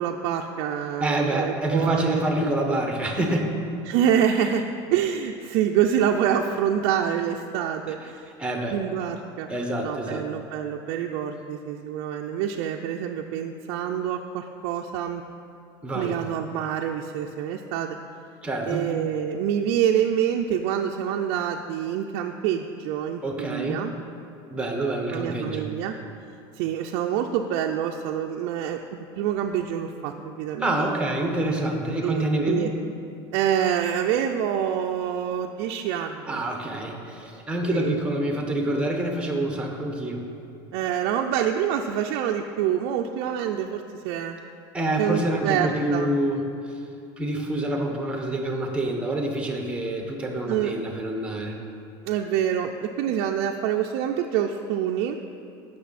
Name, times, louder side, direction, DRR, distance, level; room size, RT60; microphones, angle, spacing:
voice 1, 0.0-2.5 3.9-4.7 4.9-8.2 8.7-9.5 9.8-15.2 15.9-18.0 18.7-23.9 25.1-25.9 26.5-30.9 32.0-32.7 33.3-36.4 37.7-38.0 40.7-44.3 45.0-46.1 50.5-50.7 52.0-55.2, right 9 dB, 65° right, 1 dB, 0.5 m, -26 dB
voice 2, 1.0-3.5 8.4-8.7 9.5-10.3 15.8-16.2 18.4-18.9 23.2-23.8 24.5-25.7 30.6-32.7 36.3-40.2 44.7-46.4 47.2-51.6, right 1 dB, 10° right, 2 dB, 1.3 m, -27 dB
15.5 x 6.3 x 4.2 m, 2.5 s
supercardioid pair, 135°, 13 cm